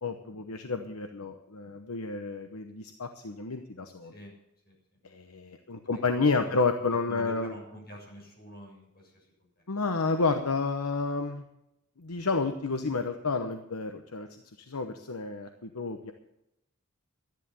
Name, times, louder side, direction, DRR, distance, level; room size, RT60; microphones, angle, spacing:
voice 1, 0.0-4.1 5.0-7.5 9.7-11.4 12.0-14.3 14.6-16.1, left 4 dB, 70° left, 7 dB, 1.0 m, -30 dB
voice 2, 4.0-4.3 4.6-4.7 5.8-6.6 7.1-9.7, right 1 dB, 45° left, -1 dB, 7.2 m, -47 dB
13.5 x 10.5 x 6.9 m, 0.87 s
head